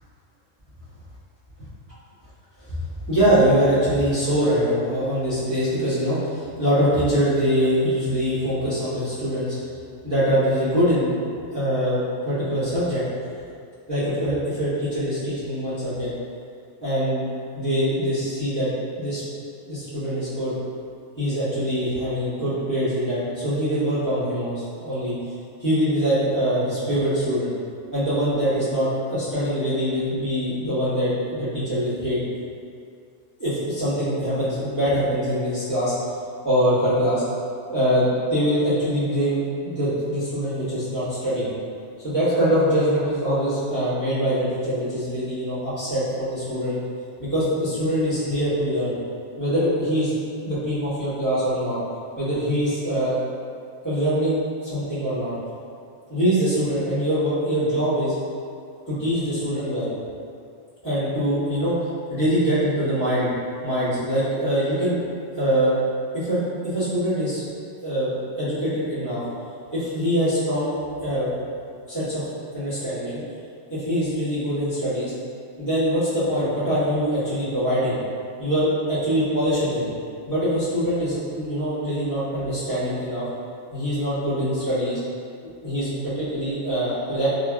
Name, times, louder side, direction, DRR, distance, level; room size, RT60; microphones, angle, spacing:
voice 1, 3.1-9.6 10.0-11.1 11.5-13.0 13.9-16.1 16.8-17.2 17.5-18.7 19.0-19.2 19.7-20.5 21.2-25.1 25.6-27.5 27.9-32.2 33.4-35.9 36.4-37.2 37.7-41.5 42.0-46.8 47.2-48.9 49.4-50.2 50.4-51.8 52.2-53.2 53.8-55.3 56.1-58.1 58.9-59.9 60.8-61.7 62.1-63.3 63.6-65.0 65.3-65.8 66.1-67.5 67.8-69.2 69.7-70.7 71.0-71.3 71.9-72.2 72.5-73.2 73.7-75.1 75.6-78.0 78.4-79.9 80.3-83.3 83.7-85.0 85.4-87.3, equal, 15° left, -16 dB, 1.4 m, -23 dB
2.9 x 2.8 x 2.4 m, 2.4 s
omnidirectional pair, 1.3 m